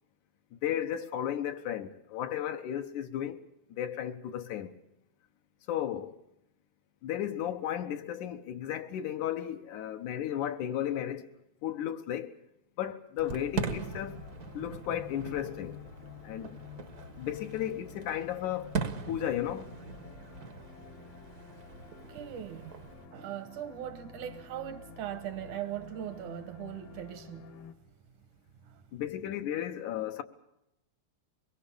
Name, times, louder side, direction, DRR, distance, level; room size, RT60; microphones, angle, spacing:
voice 1, 0.5-4.7 5.7-6.2 7.0-11.3 11.6-12.4 12.8-14.2 14.5-15.8 16.2-16.6 17.2-18.7 19.1-19.7 28.9-30.2, left 10 dB, 80° left, 2.6 m, -34 dB
sound 1, 13.2-27.7, left 7 dB, 65° left, 2.2 m, -50 dB
Fireworks, 13.2-23.1, right 5 dB, 55° right, 1.1 m, -41 dB
voice 2, 22.1-22.8 23.1-27.5 28.7-28.8, right 11 dB, 75° right, 2.6 m, -40 dB
24.0 x 21.5 x 7.1 m
omnidirectional pair, 3.5 m